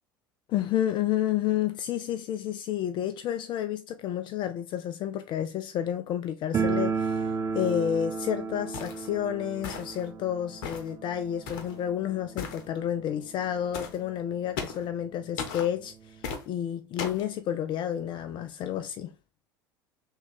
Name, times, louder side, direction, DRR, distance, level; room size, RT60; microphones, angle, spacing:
voice 1, 0.5-19.1, left 10 dB, 45° left, 0.3 m, -30 dB
sound 1, 6.5-13.2 13.5-13.6 13.8-13.9 14.7-14.8 15.1-16.3, right 5 dB, 25° right, 0.5 m, -33 dB
sound 2, 8.7-9.1 9.6-10.1 10.6-10.9 11.5-11.8 12.4-12.6 13.7-14.0 14.6-14.9 15.4-15.7 16.2-16.4 17.0-17.3, left 6 dB, 65° left, 0.8 m, -36 dB
3.5 x 2.3 x 3.8 m
hypercardioid pair, 70°, 12 cm